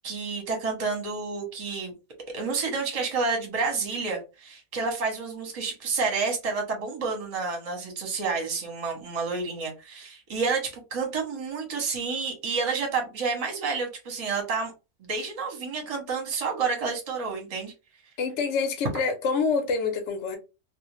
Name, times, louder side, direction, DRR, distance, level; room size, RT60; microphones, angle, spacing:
voice 1, 0.0-1.9 2.3-14.7 15.0-17.7, right 4 dB, 30° right, 0.7 m, -29 dB
voice 2, 18.2-20.4, left 4 dB, 65° left, 0.8 m, -26 dB
2.5 x 2.1 x 3.0 m
omnidirectional pair, 1.6 m